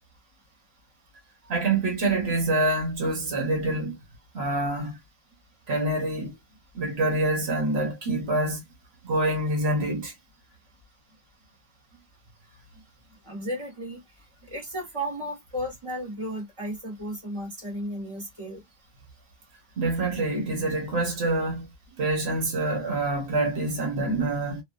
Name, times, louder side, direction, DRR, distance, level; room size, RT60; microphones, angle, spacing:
voice 1, 1.5-4.0 4.3-5.0 5.7-6.3 6.7-8.6 9.0-10.1 19.8-21.7 22.0-24.6, right 2 dB, 90° right, 1.3 m, -26 dB
voice 2, 13.2-14.0 14.5-18.6, equal, 30° right, 1.5 m, -34 dB
2.6 x 2.3 x 2.4 m
omnidirectional pair, 1.0 m